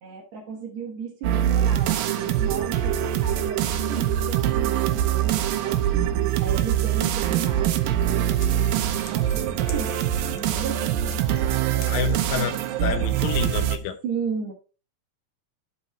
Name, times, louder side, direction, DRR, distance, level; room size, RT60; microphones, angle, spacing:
voice 1, 0.0-6.0 6.4-12.3 14.0-14.5, right 5 dB, 60° right, 2.3 m, -35 dB
sound 1, 1.2-13.8, right 11 dB, 85° right, 2.5 m, -24 dB
Scissors, 7.5-12.9, left 7 dB, 65° left, 2.2 m, -47 dB
voice 2, 11.9-12.5 12.8-14.0, left 9 dB, 85° left, 2.6 m, -28 dB
11.5 x 4.1 x 4.1 m
omnidirectional pair, 3.9 m